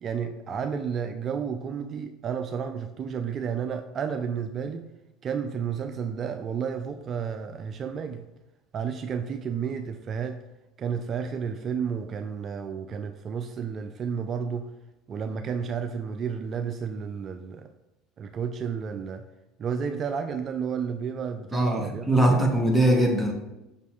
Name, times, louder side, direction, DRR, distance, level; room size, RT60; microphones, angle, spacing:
voice 1, 0.0-4.8 5.2-8.2 8.7-10.4 10.8-14.7 15.1-17.7 18.2-19.2 19.6-22.5, right 6 dB, 40° right, 7 dB, 0.3 m, -31 dB
voice 2, 21.5-23.3, right 1 dB, ahead, -1 dB, 0.9 m, -21 dB
5.6 x 4.1 x 2.3 m, 0.98 s
hypercardioid pair, 70°, 0 cm